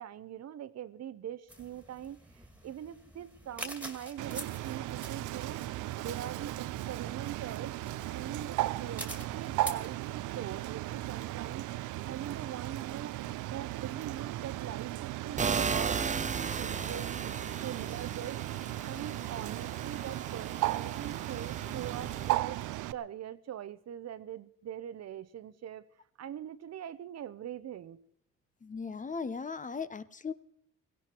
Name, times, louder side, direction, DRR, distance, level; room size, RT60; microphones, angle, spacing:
voice 1, 0.0-11.7 12.1-13.1 13.5-17.3 17.6-22.6 22.9-25.8 26.2-28.0, right 10 dB, 60° right, 0.8 m, -43 dB
sound 1, 1.5-9.9, right 1 dB, 5° right, 2.1 m, -47 dB
Bird, 4.2-22.9, right 16 dB, 85° right, 0.6 m, -36 dB
sound 2, 15.4-22.3, right 5 dB, 25° right, 0.7 m, -36 dB
voice 2, 28.6-30.3, left 5 dB, 25° left, 0.8 m, -37 dB
17.0 x 17.0 x 4.5 m
cardioid pair, 90°, 30 cm